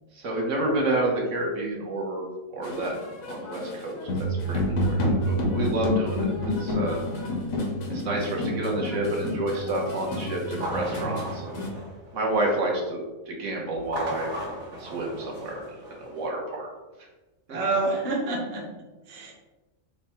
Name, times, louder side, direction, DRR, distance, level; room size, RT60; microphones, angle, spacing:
voice 1, 0.1-2.3 2.5-2.9 3.2-6.3 6.6-7.0 7.9-11.6 12.1-14.3 14.8-15.6 16.0-16.7 17.5-17.6, right 1 dB, 65° right, -1 dB, 1.2 m, -29 dB
sound 1, 2.6-11.7, left 1 dB, 90° left, 1.2 m, -29 dB
sound 2, 10.5-12.7 13.8-16.3, right 1 dB, 85° right, 1.6 m, -36 dB
voice 2, 17.5-18.6 19.1-19.3, right 3 dB, 35° right, -2 dB, 0.8 m, -27 dB
4.8 x 2.2 x 4.2 m, 1.1 s
omnidirectional pair, 1.4 m